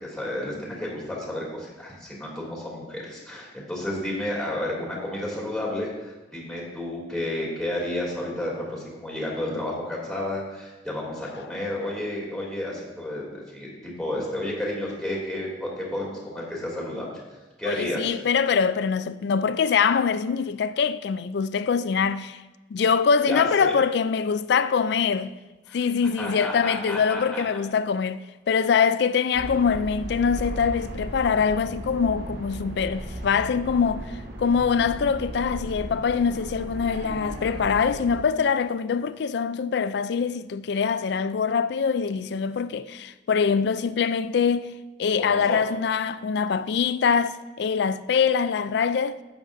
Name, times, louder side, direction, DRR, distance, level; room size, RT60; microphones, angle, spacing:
voice 1, 0.0-17.1 17.6-18.1 23.3-23.7 25.7-25.8 26.2-27.2 45.2-45.6, left 1 dB, 5° left, 2.9 m, -31 dB
voice 2, 17.7-22.4 22.7-25.4 25.7-34.1 34.4-44.7 45.0-49.2, left 6 dB, 65° left, 0.4 m, -24 dB
sound 1, 29.3-38.2, right 1 dB, 60° right, 1.3 m, -36 dB
12.5 x 9.0 x 2.6 m
head